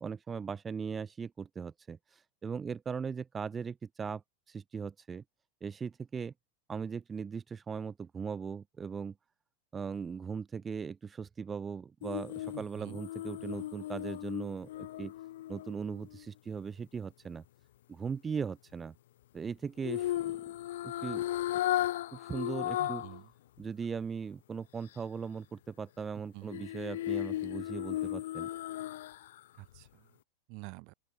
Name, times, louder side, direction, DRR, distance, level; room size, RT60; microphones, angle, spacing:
voice 1, 0.0-5.2 5.6-6.3 6.7-9.1 9.7-15.1 15.5-17.4 17.9-18.9 19.3-20.5 20.8-21.2 22.1-23.0 23.6-28.5, right 6 dB, 20° right, 1.3 m, -39 dB
sound 1, 12.0-16.2 19.8-23.2 23.6-23.7 26.5-29.4 29.7-29.9, left 14 dB, 55° left, 0.5 m, -35 dB
voice 2, 12.5-13.0 22.8-23.3 26.3-26.7 29.5-30.2 30.5-30.9, right 34 dB, 45° right, 2.6 m, -48 dB
open air
figure-of-eight pair, 90°, 0 cm